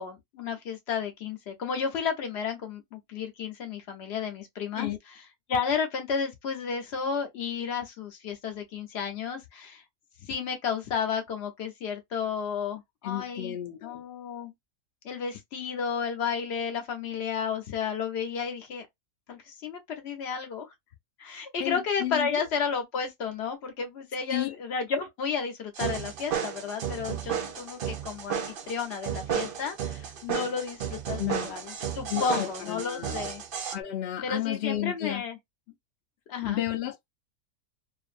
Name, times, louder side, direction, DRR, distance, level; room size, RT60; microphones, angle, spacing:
voice 1, 0.0-4.9 5.5-9.8 10.2-13.6 13.8-14.5 15.0-18.9 19.3-20.7 21.2-28.4 28.7-33.4 34.2-35.4 36.3-36.6, left 6 dB, 55° left, 0.8 m, -32 dB
voice 2, 13.0-14.0 21.6-22.4 24.3-24.6 31.2-31.6 32.1-33.3 33.7-35.2 36.5-37.1, left 13 dB, 85° left, 0.5 m, -32 dB
sound 1, 25.8-33.8, right 8 dB, 70° right, 0.5 m, -33 dB
2.6 x 2.5 x 2.5 m
omnidirectional pair, 1.6 m